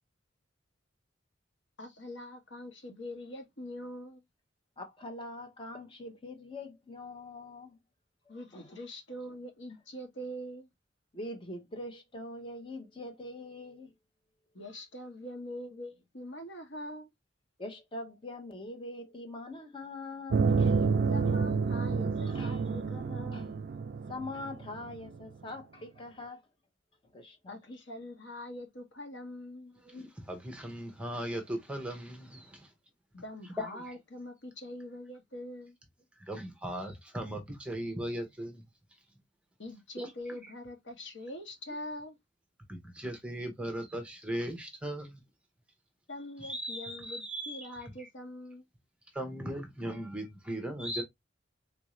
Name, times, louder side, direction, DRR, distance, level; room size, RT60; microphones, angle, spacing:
voice 1, 1.8-4.2 8.3-10.7 14.5-17.1 21.1-23.5 27.5-29.8 33.1-35.7 39.6-42.2 46.1-48.7, left 1 dB, 70° left, 1.2 m, -43 dB
voice 2, 4.8-7.8 8.5-8.8 11.1-13.9 17.6-20.9 22.3-22.6 23.3-23.5 24.1-26.4 27.1-27.6, left 2 dB, 25° left, 0.8 m, -43 dB
sound 1, 20.3-25.2, right 5 dB, 55° right, 0.4 m, -29 dB
voice 3, 29.8-32.7 33.6-33.8 36.2-38.6 40.0-40.1 42.7-45.2 46.4-47.9 49.1-51.0, right 1 dB, 5° right, 0.7 m, -38 dB
3.7 x 2.5 x 3.0 m
head